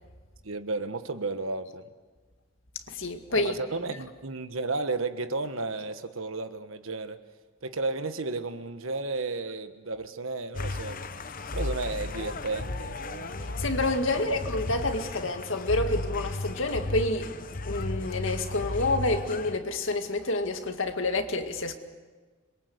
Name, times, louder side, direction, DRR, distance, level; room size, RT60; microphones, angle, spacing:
voice 1, 0.4-1.8 3.3-7.2 7.6-11.0 11.5-13.7 14.1-14.4, right 3 dB, 80° right, 10 dB, 1.4 m, -33 dB
voice 2, 2.9-3.5 13.6-21.8, left 2 dB, 75° left, 6 dB, 2.1 m, -28 dB
sound 1, 10.5-19.6, left 2 dB, 40° left, 0.9 m, -34 dB
26.5 x 22.5 x 8.0 m, 1.4 s
head